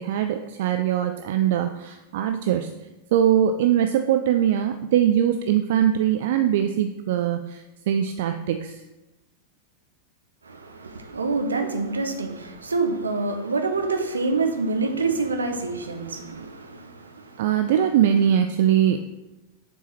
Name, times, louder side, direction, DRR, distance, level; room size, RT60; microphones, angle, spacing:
voice 1, 0.0-2.7 3.1-8.8 17.4-19.1, right 10 dB, 55° right, 8 dB, 0.3 m, -22 dB
voice 2, 10.4-17.5, right 3 dB, 75° right, 6 dB, 0.8 m, -27 dB
6.9 x 4.5 x 4.4 m, 1.0 s
figure-of-eight pair, 90°, 0 cm